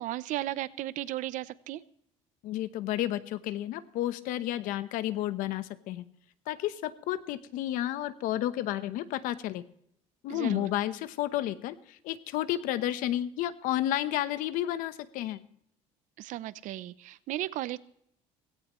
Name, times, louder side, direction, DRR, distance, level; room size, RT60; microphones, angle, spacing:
voice 1, 0.0-1.8 10.3-10.7 16.2-17.8, right 14 dB, 65° right, 17 dB, 0.7 m, -35 dB
voice 2, 2.4-6.0 6.5-9.6 10.2-15.4, left 13 dB, 75° left, 13 dB, 1.0 m, -31 dB
17.5 x 16.5 x 3.1 m, 0.71 s
cardioid pair, 130°, 14 cm